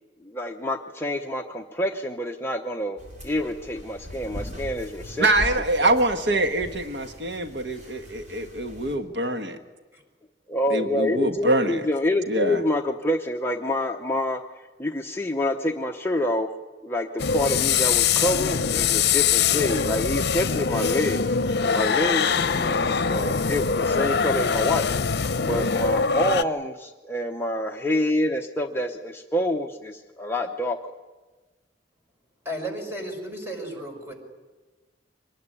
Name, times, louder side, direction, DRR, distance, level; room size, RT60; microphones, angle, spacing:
voice 1, 0.2-5.3 5.8-5.9 10.5-14.4 14.8-16.5 16.8-24.9 25.4-30.9, left 1 dB, 15° left, 2 dB, 0.8 m, -27 dB
sound 1, 3.0-9.0, left 1 dB, 45° right, 5.1 m, -40 dB
voice 2, 5.2-9.6 10.7-11.8 12.3-12.6, right 1 dB, 70° right, 6 dB, 1.5 m, -24 dB
sound 2, 17.2-26.4, left 6 dB, 65° left, 0.7 m, -23 dB
voice 3, 32.4-34.1, right 1 dB, 15° right, 2 dB, 5.6 m, -34 dB
24.5 x 19.5 x 9.9 m, 1.3 s
head